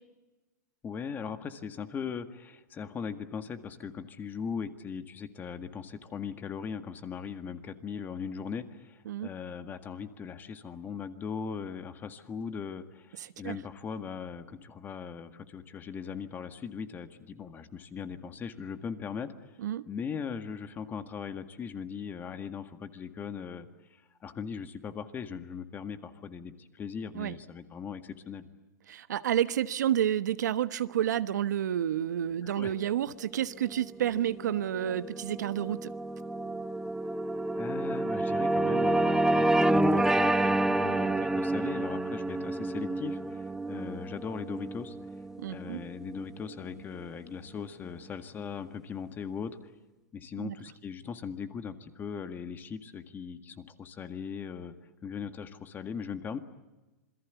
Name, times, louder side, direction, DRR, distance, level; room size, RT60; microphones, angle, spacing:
voice 1, 0.8-19.3 19.9-23.7 24.2-28.5 32.4-32.7 37.6-45.2 45.5-49.7 50.1-54.7 55.0-56.4, left 6 dB, 20° left, 1.8 m, -39 dB
voice 2, 13.2-13.6 19.6-19.8 27.1-27.3 28.9-35.9 45.4-45.8 50.4-50.5, right 10 dB, 75° right, 1.2 m, -30 dB
sound 1, 33.9-46.5, right 2 dB, 5° right, 0.8 m, -29 dB
27.0 x 22.0 x 8.2 m
hypercardioid pair, 135°, 9 cm